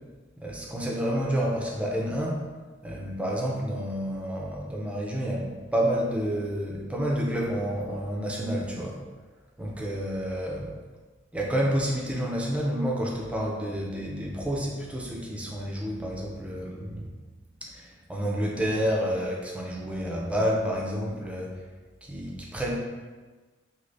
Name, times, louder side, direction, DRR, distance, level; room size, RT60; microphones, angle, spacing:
voice 1, 0.4-2.4 2.8-9.0 9.6-10.7 11.3-17.1 17.6-21.6 22.0-22.8, equal, 5° right, -2 dB, 0.4 m, -29 dB
3.2 x 2.8 x 2.6 m, 1.3 s
head